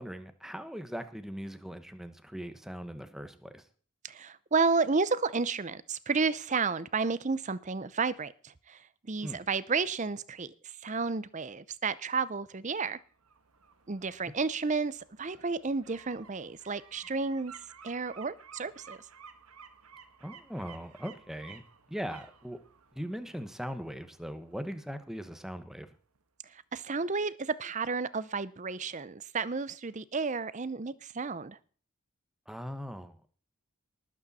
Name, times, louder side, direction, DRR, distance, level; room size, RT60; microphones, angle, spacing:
voice 1, 0.0-3.7 9.2-9.4 20.2-21.6 21.9-22.6 22.9-25.9 32.5-33.3, equal, ahead, 9 dB, 1.1 m, -40 dB
voice 2, 4.0-8.8 9.1-10.5 10.8-13.0 13.9-17.5 17.8-19.0 26.7-31.6, right 4 dB, 35° right, 18 dB, 0.6 m, -31 dB
sound 1, 13.0-25.8 26.2-26.3, right 6 dB, 90° right, 1.5 m, -55 dB
19.5 x 8.4 x 4.2 m, 0.43 s
head